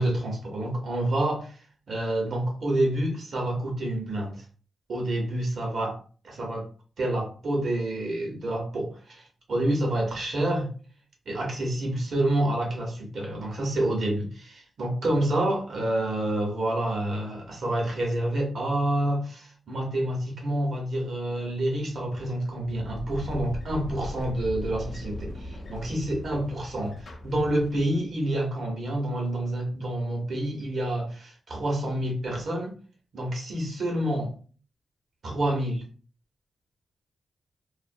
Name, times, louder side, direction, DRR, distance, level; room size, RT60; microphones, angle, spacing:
voice 1, 0.0-1.5 1.9-4.4 4.9-6.0 6.2-6.7 7.0-10.7 11.3-32.8 33.1-34.3 35.2-35.8, right 1 dB, 70° right, 0.9 m, -28 dB
sound 1, 22.5-28.1, left 1 dB, 60° left, 0.4 m, -38 dB
2.4 x 2.0 x 2.5 m
cardioid pair, 55°, 0 cm